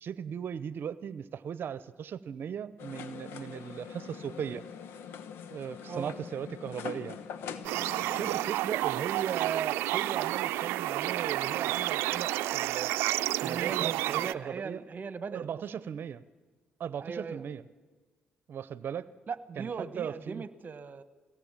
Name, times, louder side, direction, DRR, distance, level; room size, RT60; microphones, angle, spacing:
voice 1, 0.0-4.6 5.5-7.2 8.0-12.9 13.4-14.8 15.3-16.2 16.8-17.6 18.5-19.1 19.6-19.7 20.0-20.4, right 8 dB, 65° right, 17 dB, 0.8 m, -37 dB
sound 1, 2.8-8.5, left 7 dB, 80° left, 1.1 m, -43 dB
sound 2, 7.6-14.3, right 16 dB, 90° right, 0.5 m, -30 dB
voice 2, 13.4-15.6 17.0-17.4 19.3-21.0, right 5 dB, 45° right, 14 dB, 1.2 m, -39 dB
23.5 x 17.5 x 7.5 m, 1.4 s
supercardioid pair, 60°, 4 cm